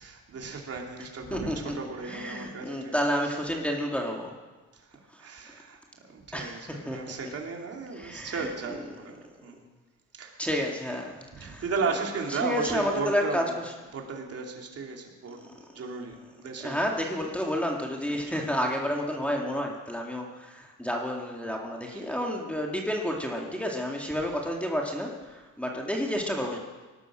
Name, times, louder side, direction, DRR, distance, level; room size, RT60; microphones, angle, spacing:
voice 1, 0.0-3.6 4.7-5.8 6.1-9.6 10.2-10.6 11.3-13.5 13.9-15.4 15.7-17.3 18.0-18.6 21.9-22.3 23.9-24.3, right 4 dB, 50° right, 1 dB, 3.0 m, -36 dB
voice 2, 1.3-1.7 2.0-4.3 5.1-5.2 6.3-7.1 8.0-8.5 10.4-11.6 12.3-13.7 16.6-26.6, equal, 5° left, 0 dB, 2.1 m, -30 dB
18.5 x 12.5 x 6.3 m, 1.3 s
cardioid pair, 90°, 30 cm